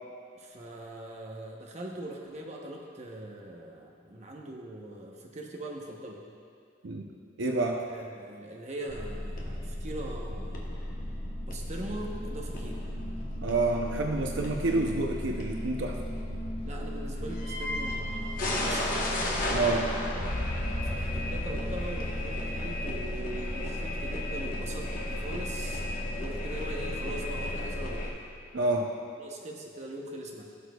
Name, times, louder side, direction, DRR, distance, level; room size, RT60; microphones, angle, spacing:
voice 1, 0.4-6.2 7.9-10.8 11.5-12.9 16.6-19.1 20.8-25.8 26.1-28.2 29.2-30.4, right 1 dB, 35° right, 0 dB, 0.8 m, -41 dB
voice 2, 7.4-7.8 13.4-16.0 19.5-19.9 28.5-28.9, right 2 dB, 70° right, 2 dB, 0.6 m, -28 dB
sound 1, 8.9-28.1, left 1 dB, 45° left, 1.0 m, -33 dB
16.0 x 6.1 x 2.3 m, 2.4 s
head